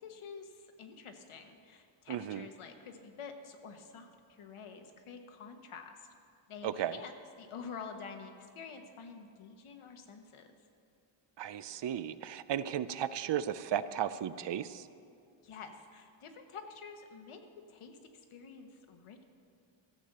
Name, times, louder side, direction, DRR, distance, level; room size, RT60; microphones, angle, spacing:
voice 1, 0.0-6.1 6.5-10.5 15.4-17.4 17.7-19.2, left 5 dB, 80° left, 6 dB, 1.2 m, -48 dB
voice 2, 2.1-2.5 6.6-7.0 11.4-14.9, right 10 dB, 60° right, 14 dB, 0.5 m, -35 dB
13.5 x 7.6 x 6.6 m, 2.4 s
wide cardioid pair, 115°, 49 cm